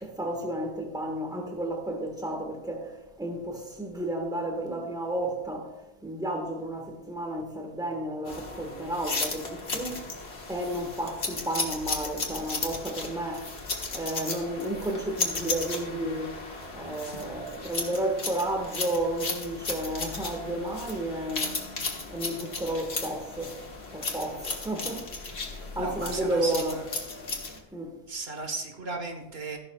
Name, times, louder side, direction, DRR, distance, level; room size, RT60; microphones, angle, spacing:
voice 1, 0.0-5.7 6.0-10.0 10.5-13.5 13.9-16.3 16.7-21.6 22.1-23.6 23.9-25.1 25.4-26.7 27.7-28.0, right 1 dB, 5° right, 1.5 m, -32 dB
sound 1, 8.3-27.6, left 3 dB, 85° left, 1.7 m, -35 dB
voice 2, 25.8-26.8 28.1-29.6, right 3 dB, 75° right, 1.6 m, -35 dB
15.0 x 11.5 x 2.4 m
omnidirectional pair, 1.0 m